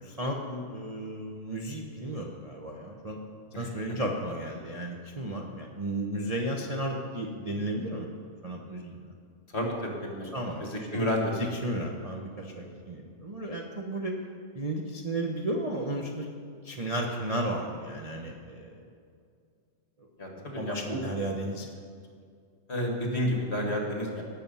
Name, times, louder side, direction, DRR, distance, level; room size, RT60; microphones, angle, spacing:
voice 1, 0.0-3.2 3.6-8.1 8.4-9.1 10.3-11.0 11.4-14.1 14.5-16.3 16.6-18.8 20.4-21.7, right 1 dB, 30° right, -1 dB, 0.8 m, -34 dB
voice 2, 3.5-4.0 9.5-11.3 12.6-12.7 20.2-21.1 22.7-24.2, equal, 40° left, 1 dB, 2.1 m, -31 dB
18.5 x 7.1 x 5.6 m, 2.2 s
omnidirectional pair, 1.7 m